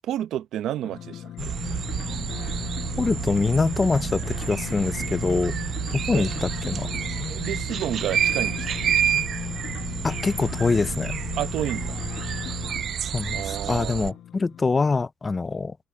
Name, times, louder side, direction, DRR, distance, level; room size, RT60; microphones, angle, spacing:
voice 1, 0.1-1.5 6.1-6.3 7.3-8.8 11.4-12.0 13.3-14.1, right 12 dB, 80° right, 0.8 m, -31 dB
sound 1, 0.8-14.9, left 11 dB, 75° left, 5.5 m, -36 dB
sound 2, 1.4-14.1, right 9 dB, 60° right, 0.4 m, -29 dB
voice 2, 3.0-5.5 5.9-6.9 10.0-11.1 13.1-15.8, left 4 dB, 30° left, 0.5 m, -24 dB
cardioid pair, 90°, 0 cm